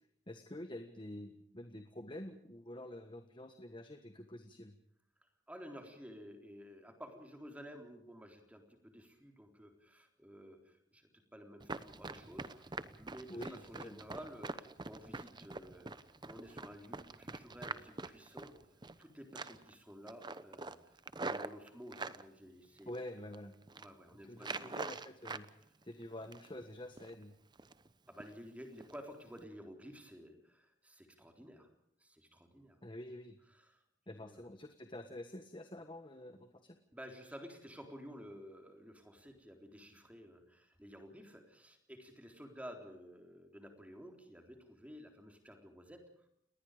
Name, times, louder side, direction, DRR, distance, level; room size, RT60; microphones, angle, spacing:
voice 1, 0.3-4.7 13.3-14.0 22.9-23.5 24.2-25.5 25.8-27.4 32.8-33.4 34.1-36.8, left 1 dB, 25° left, 7 dB, 1.4 m, -47 dB
voice 2, 5.5-18.5 19.0-22.9 23.7-24.8 28.1-31.7 32.0-32.8 33.5-33.8 34.1-34.5 36.9-46.3, equal, 10° right, 4 dB, 3.8 m, -53 dB
Run, 11.6-19.0 19.3-19.7 20.1-22.2 22.8-23.3 23.6-23.9 24.4-25.5 25.8-26.6 27.0-27.1 27.5-27.9 28.2-28.3 28.8-28.9 29.3-29.4, right 3 dB, 25° right, 0.9 m, -44 dB
29.5 x 20.0 x 5.1 m, 0.71 s
head